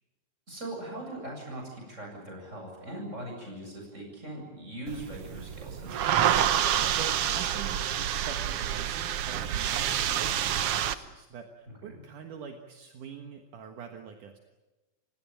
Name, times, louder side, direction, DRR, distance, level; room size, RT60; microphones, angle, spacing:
voice 1, 0.5-6.3 11.8-12.0, right 1 dB, 20° right, 0 dB, 8.2 m, -40 dB
sound 1, 4.9-10.9, right 10 dB, 85° right, 1.3 m, -28 dB
voice 2, 6.9-14.4, right 7 dB, 65° right, 4 dB, 2.9 m, -44 dB
29.0 x 17.5 x 9.1 m, 1.1 s
omnidirectional pair, 4.0 m